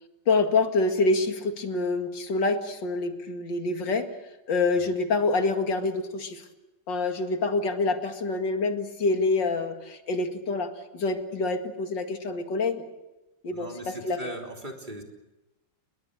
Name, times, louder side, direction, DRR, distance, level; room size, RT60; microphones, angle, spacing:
voice 1, 0.3-4.1 4.5-6.4 6.9-12.8 13.4-14.2, left 3 dB, 80° left, 6 dB, 2.8 m, -26 dB
voice 2, 13.5-15.0, equal, 25° right, 1 dB, 3.5 m, -39 dB
29.5 x 21.0 x 6.7 m, 1.0 s
omnidirectional pair, 1.9 m